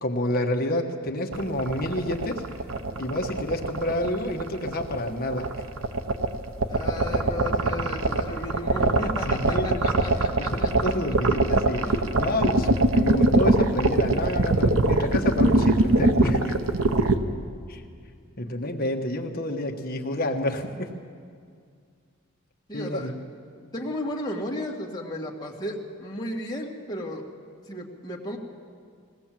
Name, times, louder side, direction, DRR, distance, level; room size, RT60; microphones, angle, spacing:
voice 1, 0.0-2.5 3.0-5.6 9.0-10.0 10.4-16.5 17.7-17.8 18.4-20.9 22.7-23.1, left 1 dB, 45° left, 3 dB, 1.4 m, -29 dB
sound 1, 1.3-17.1, right 2 dB, 80° right, 1.1 m, -22 dB
voice 2, 6.7-10.9 11.9-12.0 22.7-23.1 23.6-27.2 27.7-28.4, left 1 dB, 20° left, -3 dB, 2.1 m, -34 dB
20.5 x 17.5 x 7.6 m, 2.2 s
head